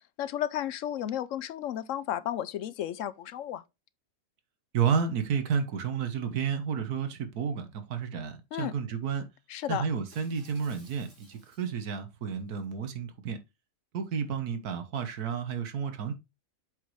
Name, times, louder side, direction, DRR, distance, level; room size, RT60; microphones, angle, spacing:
voice 1, 0.2-3.6 8.5-8.7 9.5-9.8, left 11 dB, 65° left, 0.8 m, -33 dB
voice 2, 4.7-9.2 9.7-13.4 13.9-16.1, right 6 dB, 75° right, 1.7 m, -31 dB
Shatter, 10.1-11.9 12.4-12.6, right 2 dB, 50° right, 3.1 m, -58 dB
7.9 x 4.9 x 3.2 m
omnidirectional pair, 1.7 m